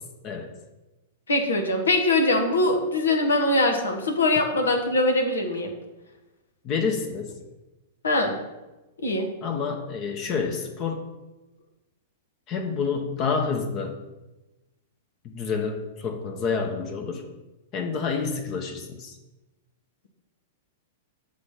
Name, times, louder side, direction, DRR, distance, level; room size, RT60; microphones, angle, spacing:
voice 1, 1.3-5.7 8.0-8.3 9.0-9.3, left 2 dB, 75° left, 4 dB, 1.2 m, -22 dB
voice 2, 6.6-7.3 9.4-11.1 12.5-14.0 15.2-17.2 17.7-19.1, left 5 dB, 40° left, 4 dB, 1.0 m, -28 dB
7.5 x 3.4 x 5.9 m, 1.1 s
figure-of-eight pair, 105°, 0 cm